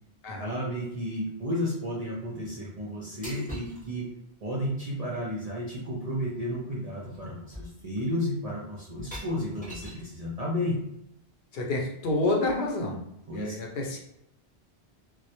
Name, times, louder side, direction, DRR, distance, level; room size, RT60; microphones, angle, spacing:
voice 1, 0.4-4.1 4.4-10.8 13.3-13.6, equal, 55° right, -5 dB, 0.4 m, -32 dB
sound 1, 3.2-3.9 5.9-6.0 6.3-6.6 7.0-7.2 7.5-8.1 8.9-10.1 11.7-12.7, equal, 10° left, 0.6 m, -44 dB
voice 2, 11.5-13.0 13.3-14.0, left 2 dB, 65° left, 0 dB, 0.7 m, -28 dB
2.1 x 2.1 x 2.7 m, 0.78 s
omnidirectional pair, 1.1 m